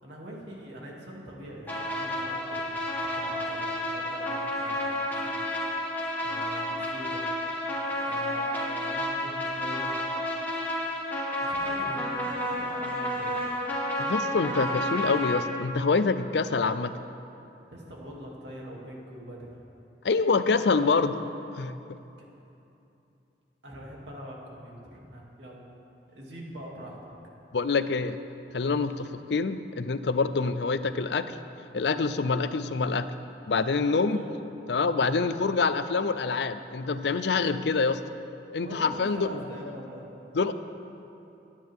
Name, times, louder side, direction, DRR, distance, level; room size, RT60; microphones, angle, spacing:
voice 1, 0.0-5.4 6.2-7.3 8.0-10.0 11.4-13.5 17.7-19.5 23.6-25.6 26.1-27.1 29.0-29.3 33.9-34.3 34.9-35.3 38.6-40.0 40.3-40.5, equal, 90° right, -3 dB, 2.7 m, -43 dB
sound 1, 1.7-15.4, left 1 dB, 10° left, 1.9 m, -31 dB
voice 2, 14.0-16.9 20.0-21.2 21.5-21.8 27.5-28.2 28.5-31.4 31.7-33.1 33.5-34.2 34.7-38.0 38.5-39.4 40.3-40.5, left 4 dB, 75° left, 12 dB, 0.5 m, -26 dB
23.0 x 9.9 x 3.6 m, 2.8 s
head